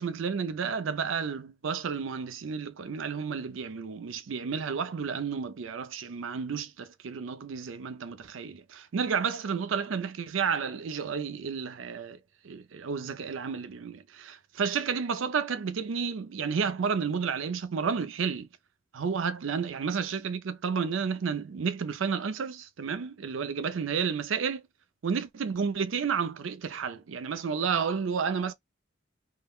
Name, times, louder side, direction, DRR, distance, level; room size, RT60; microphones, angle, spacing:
voice 1, 0.0-12.2 12.4-18.5 18.9-24.6 25.0-28.5, right 6 dB, 80° right, 0.5 m, -31 dB
3.7 x 2.1 x 2.3 m
head